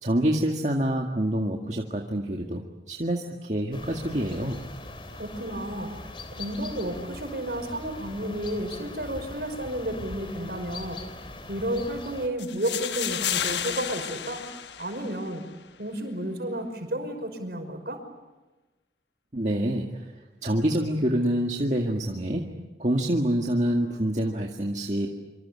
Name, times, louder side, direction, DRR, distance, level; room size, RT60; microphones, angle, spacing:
voice 1, 0.0-2.6 2.9-4.6 19.3-20.1 20.4-22.5 22.8-25.1, right 1 dB, 40° right, 1 dB, 2.0 m, -26 dB
sound 1, 3.7-12.3, left 2 dB, 30° left, 2.6 m, -41 dB
voice 2, 5.1-5.9 6.3-11.0 11.5-14.4 14.8-15.4 15.8-18.0, right 1 dB, 60° right, 5 dB, 5.8 m, -32 dB
sound 2, 12.4-15.4, left 9 dB, 85° left, 1.3 m, -32 dB
26.5 x 25.5 x 8.5 m, 1.1 s
head